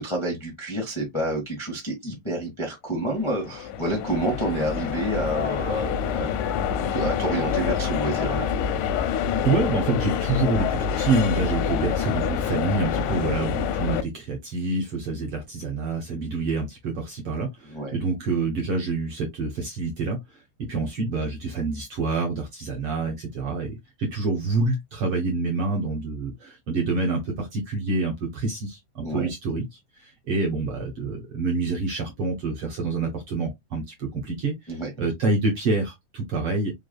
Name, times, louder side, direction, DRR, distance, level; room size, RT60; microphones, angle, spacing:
voice 1, 0.0-6.3 6.7-8.5 17.7-18.0 29.0-29.3 34.7-34.9, right 1 dB, 35° left, 0.4 m, -28 dB
sound 1, 3.1-14.0, left 8 dB, 80° left, 1.7 m, -26 dB
voice 2, 9.4-20.4 20.7-36.7, right 3 dB, 60° right, 1.5 m, -27 dB
4.7 x 3.6 x 2.2 m
omnidirectional pair, 3.8 m